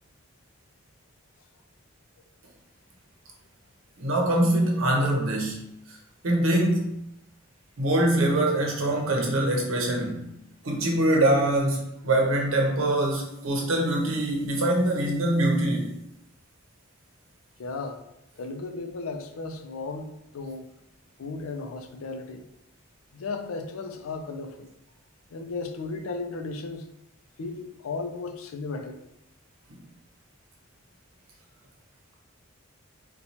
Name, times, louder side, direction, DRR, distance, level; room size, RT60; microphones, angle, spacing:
voice 1, 4.0-5.7 6.2-7.0 7.8-10.3 10.6-15.9, right 1 dB, 80° right, 0 dB, 0.8 m, -24 dB
voice 2, 17.6-18.0 18.4-20.7 21.2-22.5 23.1-24.7 25.3-26.8 27.4-29.0, left 3 dB, 90° left, 6 dB, 0.4 m, -35 dB
4.1 x 2.3 x 2.8 m, 0.80 s
head